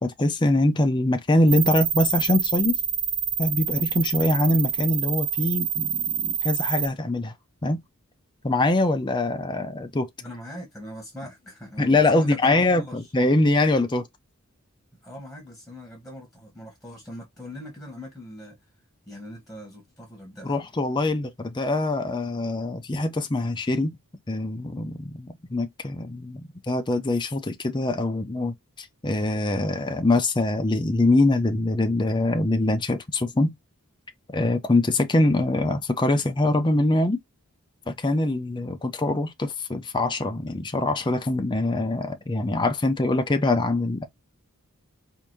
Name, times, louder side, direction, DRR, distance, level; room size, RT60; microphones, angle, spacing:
voice 1, 0.0-2.7 3.4-7.3 7.6-7.8 8.4-10.1 11.8-14.1 20.4-24.0 24.3-33.5 34.3-37.2 37.9-44.0, left 2 dB, 20° left, 0.6 m, -23 dB
sound 1, 1.5-6.9, right 9 dB, 25° right, 0.6 m, -27 dB
voice 2, 10.2-13.0 15.0-18.7 19.1-20.6, equal, ahead, 1.4 m, -41 dB
4.7 x 2.7 x 2.7 m
head